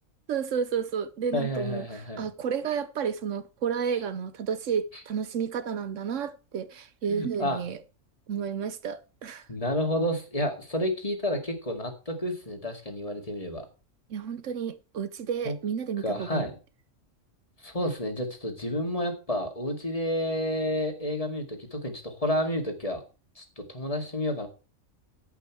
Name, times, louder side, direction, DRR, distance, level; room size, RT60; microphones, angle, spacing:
voice 1, 0.3-7.8 8.3-9.5 14.1-16.5, right 7 dB, 70° right, 1.1 m, -31 dB
voice 2, 1.3-2.3 7.1-7.6 9.5-13.7 15.4-15.6 16.0-16.5 17.6-23.0 23.4-24.5, left 1 dB, 25° left, 2.1 m, -30 dB
11.5 x 8.2 x 4.6 m
omnidirectional pair, 1.4 m